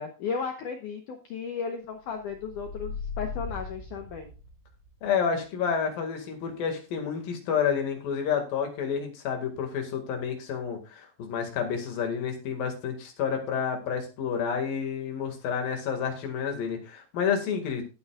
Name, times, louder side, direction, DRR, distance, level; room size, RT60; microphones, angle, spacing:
voice 1, 0.0-4.3, left 5 dB, 90° left, 4 dB, 1.8 m, -35 dB
Sub bass riser, 2.2-4.9, left 4 dB, 70° right, 6.2 m, -38 dB
voice 2, 5.0-17.8, left 7 dB, 60° left, 4 dB, 3.4 m, -29 dB
16.0 x 8.3 x 2.4 m, 0.32 s
omnidirectional pair, 5.2 m